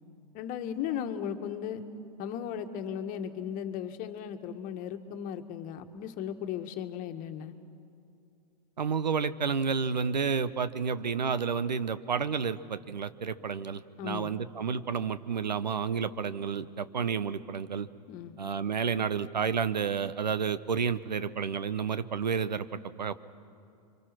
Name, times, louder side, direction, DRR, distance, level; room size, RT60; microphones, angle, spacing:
voice 1, 0.3-1.8 2.2-7.5 14.0-14.4 18.1-18.4, left 9 dB, 40° left, 7 dB, 1.7 m, -36 dB
voice 2, 8.8-17.9 18.4-22.7 23.0-23.1, right 6 dB, 90° right, 14 dB, 0.9 m, -30 dB
29.0 x 25.0 x 6.1 m, 2.5 s
hypercardioid pair, 105°, 21 cm